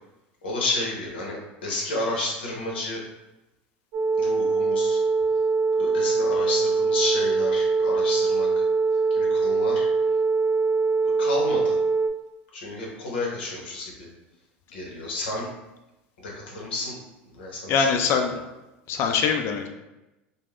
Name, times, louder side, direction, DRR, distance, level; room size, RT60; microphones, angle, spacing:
voice 1, 0.4-3.0 4.2-5.0 5.8-8.5 9.1-9.9 11.2-11.8 12.5-13.9 14.7-15.5 16.2-16.9 17.3-18.1, left 2 dB, 90° left, -2 dB, 0.8 m, -31 dB
sound 1, 3.9-12.1, right 4 dB, 45° right, 0.5 m, -23 dB
voice 2, 17.7-18.4 18.9-19.7, left 6 dB, 50° left, 5 dB, 0.4 m, -23 dB
2.4 x 2.1 x 3.5 m, 0.99 s
hypercardioid pair, 90°, 6 cm